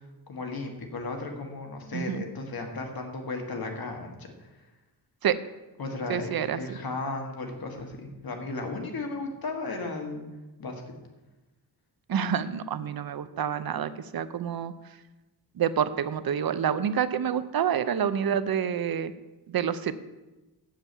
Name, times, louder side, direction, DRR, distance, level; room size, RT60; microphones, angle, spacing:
voice 1, 0.3-4.5 5.8-10.2 10.6-10.8, left 3 dB, 65° left, 3 dB, 1.9 m, -35 dB
voice 2, 1.9-2.2 5.2-5.4 6.1-6.6 12.1-14.7 15.6-19.1 19.5-19.9, right 8 dB, 65° right, 13 dB, 0.7 m, -28 dB
7.5 x 7.2 x 8.1 m, 1.1 s
wide cardioid pair, 115°, 39 cm